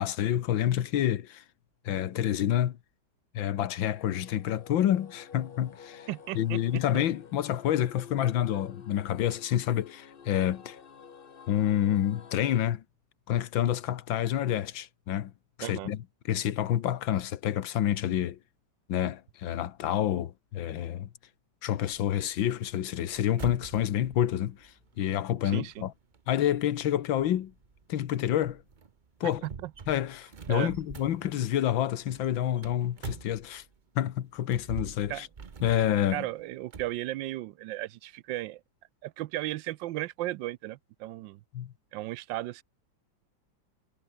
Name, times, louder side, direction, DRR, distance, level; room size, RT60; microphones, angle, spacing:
voice 1, 0.0-1.4 1.9-2.8 3.3-6.1 6.3-10.8 11.5-12.8 13.3-15.3 15.6-18.4 18.9-21.1 21.6-25.9 26.3-27.5 27.9-28.6 29.2-29.4 29.9-33.6 34.0-35.3 35.6-36.3 41.5-41.7, left 11 dB, 80° left, 1.8 m, -28 dB
sound 1, 3.8-12.6, left 6 dB, 40° left, 0.9 m, -50 dB
voice 2, 6.1-6.8 15.6-15.9 25.4-25.9 29.2-29.7 30.5-30.7 35.1-35.3 36.1-38.6 39.0-41.4 41.9-42.6, right 16 dB, 75° right, 1.3 m, -35 dB
sound 2, 21.9-33.9 34.4-37.0, right 5 dB, 35° right, 0.8 m, -46 dB
omnidirectional pair, 2.1 m